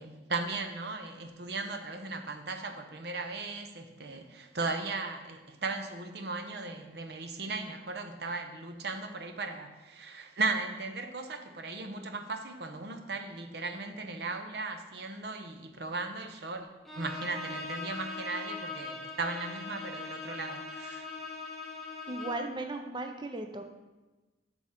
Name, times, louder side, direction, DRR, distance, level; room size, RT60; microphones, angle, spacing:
voice 1, 0.0-16.7 17.0-21.1, right 3 dB, 65° right, 6 dB, 0.7 m, -37 dB
Bowed string instrument, 16.9-22.5, left 3 dB, ahead, 0.9 m, -41 dB
voice 2, 22.1-23.6, right 2 dB, 25° right, 6 dB, 0.5 m, -36 dB
8.4 x 6.3 x 3.7 m, 1.2 s
head